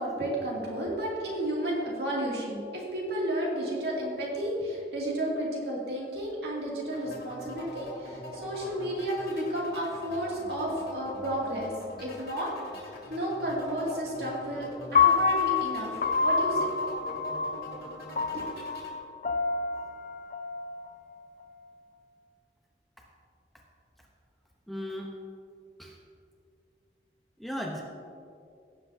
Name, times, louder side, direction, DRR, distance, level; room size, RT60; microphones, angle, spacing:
voice 1, 0.0-11.7 12.0-15.9 16.2-16.7 18.3-18.5, right 1 dB, 65° right, -4 dB, 2.5 m, -32 dB
sound 1, 6.9-18.9, equal, 60° left, 2.3 m, -43 dB
Piano, 14.9-21.1, left 5 dB, 45° left, 0.5 m, -28 dB
voice 2, 24.7-25.2 25.8-26.0 27.4-27.8, equal, ahead, -2 dB, 0.8 m, -36 dB
17.0 x 7.7 x 2.8 m, 2.4 s
head